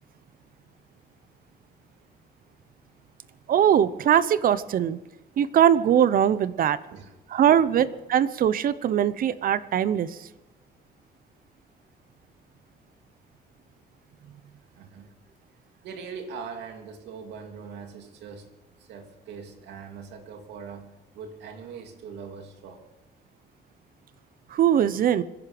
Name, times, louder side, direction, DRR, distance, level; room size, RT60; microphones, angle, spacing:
voice 1, 3.5-5.0 5.4-6.8 7.3-10.3 24.5-25.2, right 9 dB, 55° right, 16 dB, 0.8 m, -21 dB
voice 2, 14.7-15.1 15.8-18.5 18.8-22.9, right 5 dB, 85° right, 4 dB, 2.6 m, -41 dB
25.5 x 11.0 x 5.2 m, 1.1 s
cardioid pair, 125°, 17 cm